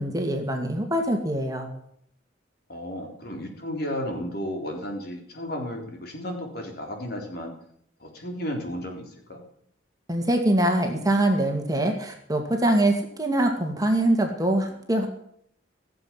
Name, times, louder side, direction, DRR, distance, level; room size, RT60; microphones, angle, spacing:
voice 1, 0.0-1.7 10.1-15.1, right 1 dB, 20° right, 3 dB, 2.3 m, -23 dB
voice 2, 2.7-7.5 8.0-9.4, equal, 55° left, 3 dB, 3.6 m, -33 dB
17.0 x 7.8 x 9.8 m, 0.67 s
head